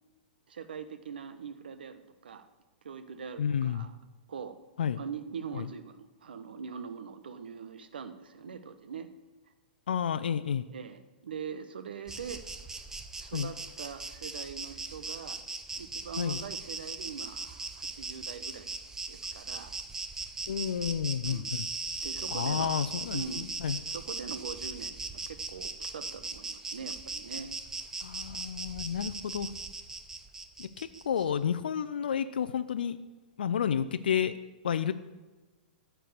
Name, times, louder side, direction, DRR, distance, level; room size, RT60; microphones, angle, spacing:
voice 1, 0.5-2.5 2.8-4.0 4.3-4.6 5.0-9.1 10.7-12.4 13.2-15.4 15.8-18.7 19.1-19.7 21.2-21.5 22.0-22.8 23.1-23.5 23.9-27.5, right 6 dB, 80° right, 10 dB, 1.1 m, -42 dB
voice 2, 3.4-3.8 4.8-5.0 5.5-5.7 9.9-10.7 13.3-13.5 16.2-16.4 20.5-21.7 22.3-23.8 28.0-29.5 30.6-33.0 33.4-34.4 34.6-34.9, left 8 dB, 75° left, 11 dB, 0.5 m, -31 dB
Insect, 12.1-31.2, right 3 dB, 10° right, 0.7 m, -39 dB
13.5 x 4.6 x 8.0 m, 1.2 s
hypercardioid pair, 120°, 5 cm